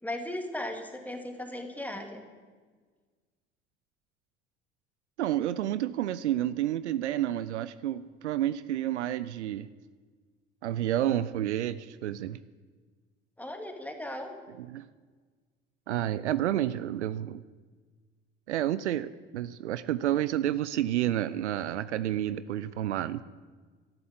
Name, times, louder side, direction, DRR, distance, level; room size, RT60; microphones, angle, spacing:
voice 1, 0.0-2.2 13.4-14.4, left 1 dB, 5° left, 3 dB, 2.5 m, -37 dB
voice 2, 5.2-9.7 10.6-12.4 14.6-14.9 15.9-17.4 18.5-23.2, right 12 dB, 75° right, 15 dB, 0.5 m, -30 dB
12.5 x 11.0 x 7.6 m, 1.5 s
figure-of-eight pair, 60°, 35 cm